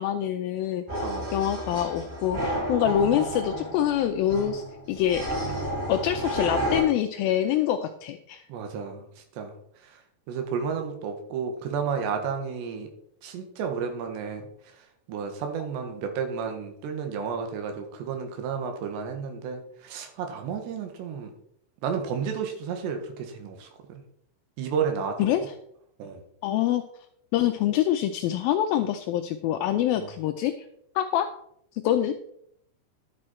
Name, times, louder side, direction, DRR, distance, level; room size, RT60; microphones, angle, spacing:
voice 1, 0.0-4.6 4.9-5.2 5.9-8.4 25.2-25.4 26.4-26.8 27.3-30.5 31.0-31.3 31.8-32.1, left 11 dB, 90° left, 7 dB, 2.1 m, -25 dB
sound 1, 0.9-6.8, equal, 40° right, 6.2 m, -31 dB
voice 2, 1.0-1.3 8.5-9.1 9.4-9.5 10.3-12.9 13.2-14.5 15.1-21.3 21.8-24.0 24.6-25.2 26.0-26.2 30.0-30.1, right 6 dB, 85° right, 5 dB, 3.7 m, -32 dB
11.5 x 7.8 x 4.4 m, 0.69 s
omnidirectional pair, 4.9 m